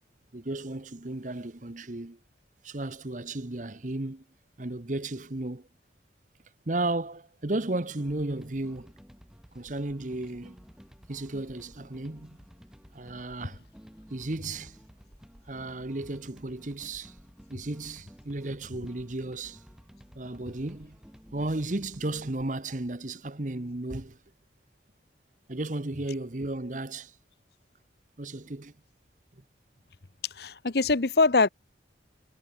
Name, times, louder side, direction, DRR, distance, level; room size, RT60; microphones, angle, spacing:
voice 1, 0.3-2.2 2.6-4.2 4.6-5.7 6.7-8.9 9.5-10.6 11.1-12.4 12.9-13.6 14.1-14.8 15.5-17.1 17.5-19.6 20.1-21.0 21.3-24.2 25.5-27.1 28.2-28.7, right 2 dB, 45° right, 1.1 m, -34 dB
sound 1, 8.0-22.5, equal, 5° right, 2.4 m, -53 dB
voice 2, 30.3-31.5, left 3 dB, 60° left, 0.9 m, -23 dB
head